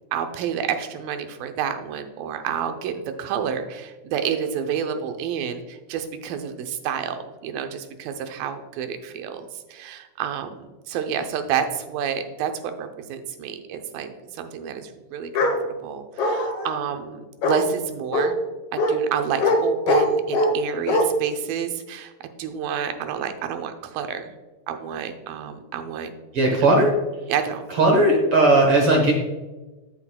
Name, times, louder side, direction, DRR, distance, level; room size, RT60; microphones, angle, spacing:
voice 1, 0.1-18.4 18.7-22.1 22.4-24.3 24.7-26.1 26.5-26.7 27.3-27.6, right 8 dB, 90° right, 7 dB, 2.5 m, -29 dB
Bark, 15.3-15.6 16.2-16.7 17.4-17.6 18.1-18.3 18.8-18.9 19.4-19.6 19.9-20.5 20.9-21.0, left 2 dB, 90° left, 1.2 m, -21 dB
voice 2, 26.3-26.9 27.8-29.1, right 2 dB, 70° right, 1 dB, 1.3 m, -17 dB
13.5 x 5.8 x 2.2 m, 1.2 s
omnidirectional pair, 4.0 m